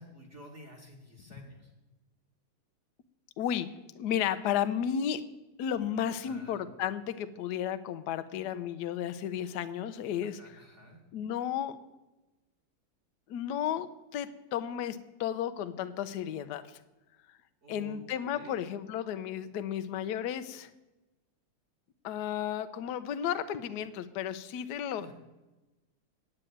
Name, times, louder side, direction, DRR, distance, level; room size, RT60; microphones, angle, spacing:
voice 1, 0.0-1.7 6.1-6.6 10.2-11.0 17.6-18.6 24.9-25.1, right 1 dB, 35° right, 1 dB, 1.8 m, -51 dB
voice 2, 3.4-3.7 4.0-5.2 5.6-10.4 11.1-11.8 13.3-16.8 17.7-20.7 22.0-25.1, left 9 dB, 65° left, 11 dB, 1.0 m, -33 dB
8.9 x 8.8 x 9.1 m, 1.1 s
omnidirectional pair, 2.4 m